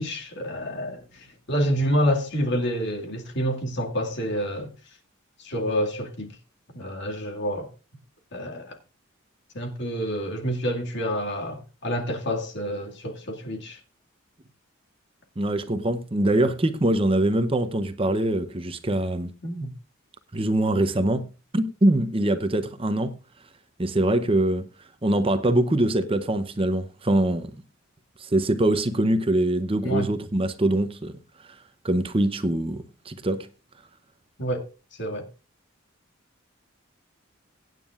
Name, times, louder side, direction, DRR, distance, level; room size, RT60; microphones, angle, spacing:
voice 1, 0.0-4.7 5.4-6.3 6.7-7.7 8.3-8.8 9.5-13.8 19.4-19.7 29.8-30.1 34.4-34.7 35.0-35.3, equal, 55° left, 2.2 m, -28 dB
voice 2, 15.4-19.3 20.3-23.2 23.8-24.7 25.0-27.5 28.2-31.2 31.4-31.6 31.8-33.5, right 1 dB, 25° right, 0.8 m, -23 dB
23.0 x 9.2 x 2.5 m
head